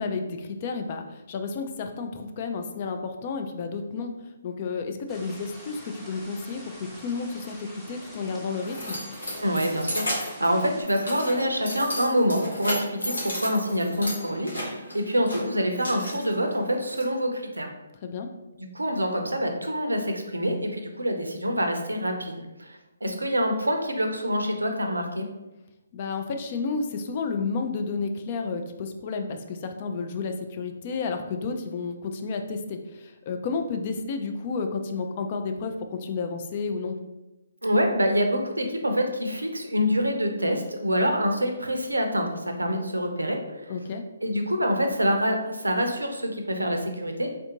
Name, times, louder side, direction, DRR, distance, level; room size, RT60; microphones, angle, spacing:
voice 1, 0.0-4.1 4.4-9.0 18.0-18.3 25.9-37.0 43.7-44.0, left 4 dB, 40° left, 5 dB, 0.4 m, -31 dB
sound 1, 5.1-10.8, equal, ahead, 0.7 m, -46 dB
Keys jangling, 7.9-17.0, equal, 90° left, 1.4 m, -34 dB
voice 2, 9.4-17.7 18.6-25.3 37.6-43.7 44.2-47.3, equal, 90° right, 4 dB, 0.5 m, -26 dB
3.4 x 2.5 x 2.8 m, 0.99 s
figure-of-eight pair, 140°, 0 cm